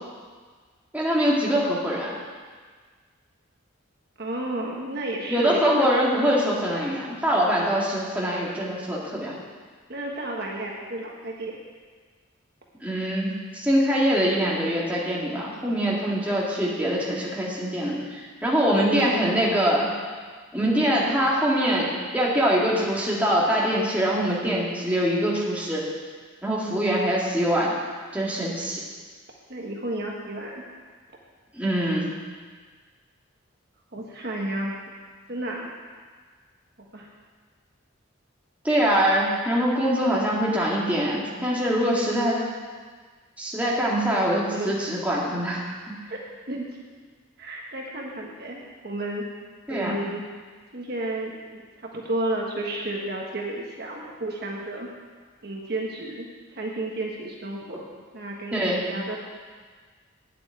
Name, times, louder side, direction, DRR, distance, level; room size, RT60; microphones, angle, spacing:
voice 1, 0.9-2.2 5.3-9.3 12.8-19.9 20.5-25.9 26.4-27.7 28.1-28.8 31.5-32.1 38.6-42.4 43.4-45.6 49.7-50.0 58.5-58.9, equal, 5° right, -5 dB, 2.1 m, -23 dB
voice 2, 4.2-5.9 9.9-11.6 18.8-19.2 20.7-20.9 29.5-30.6 33.9-34.8 35.3-35.7 36.9-37.1 44.1-44.2 44.5-44.7 45.3-45.5 46.0-47.0 47.4-49.3 49.7-50.2 50.7-54.9 55.4-56.3 56.5-57.9 58.1-59.2, right 1 dB, 50° right, -1 dB, 1.3 m, -32 dB
8.8 x 8.2 x 9.2 m, 1.6 s
head